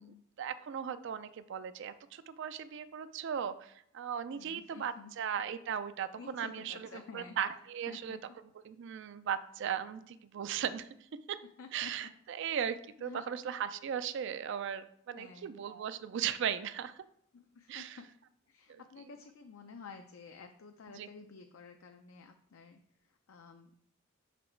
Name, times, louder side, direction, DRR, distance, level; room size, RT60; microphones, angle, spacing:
voice 1, 0.4-8.2 8.7-10.9 11.3-11.4 11.7-17.0 17.7-18.0 18.7-18.8 21.0-21.1, right 8 dB, 60° right, 13 dB, 0.3 m, -37 dB
voice 2, 4.3-5.1 6.2-7.4 7.9-8.4 11.6-11.9 12.4-12.6 13.0-13.3 15.1-15.6 17.3-18.1 18.5-23.8, left 5 dB, 75° left, 5 dB, 0.5 m, -52 dB
6.0 x 4.2 x 4.4 m, 0.70 s
head